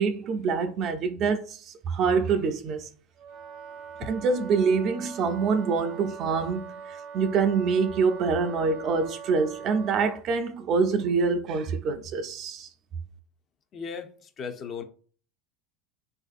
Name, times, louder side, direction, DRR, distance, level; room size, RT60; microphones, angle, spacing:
voice 1, 0.0-2.9 4.0-12.7, right 5 dB, 45° right, 0.4 m, -26 dB
Wind instrument woodwind instrument, 3.2-10.2, right 7 dB, 65° right, 0.8 m, -42 dB
voice 2, 13.7-14.1 14.4-14.8, left 6 dB, 35° left, 0.5 m, -35 dB
3.3 x 2.5 x 2.4 m
supercardioid pair, 120°, 0 cm